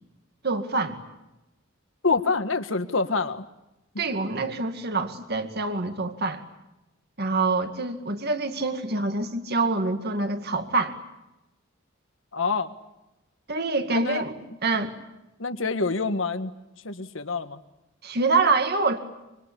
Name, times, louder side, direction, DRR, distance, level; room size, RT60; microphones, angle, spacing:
voice 1, 0.4-1.0 4.0-6.4 7.2-10.9 13.5-14.3 14.6-14.9 18.0-19.0, right 3 dB, 55° right, 7 dB, 2.2 m, -25 dB
voice 2, 2.0-3.5 3.9-4.0 12.3-12.7 13.9-14.2 15.4-16.5 16.8-17.6, left 4 dB, 70° left, 9 dB, 1.7 m, -26 dB
25.5 x 24.5 x 8.5 m, 0.95 s
head